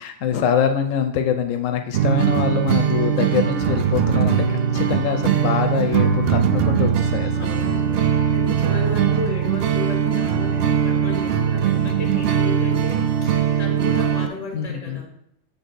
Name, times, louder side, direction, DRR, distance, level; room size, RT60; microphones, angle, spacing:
voice 1, 0.0-7.6 9.1-9.2 14.5-15.0, left 7 dB, 85° left, 7 dB, 1.0 m, -24 dB
sound 1, 1.9-14.3, right 8 dB, 65° right, 0.6 m, -20 dB
voice 2, 7.3-15.1, left 1 dB, 30° left, 0 dB, 1.4 m, -33 dB
7.0 x 3.6 x 4.0 m, 0.73 s
omnidirectional pair, 1.3 m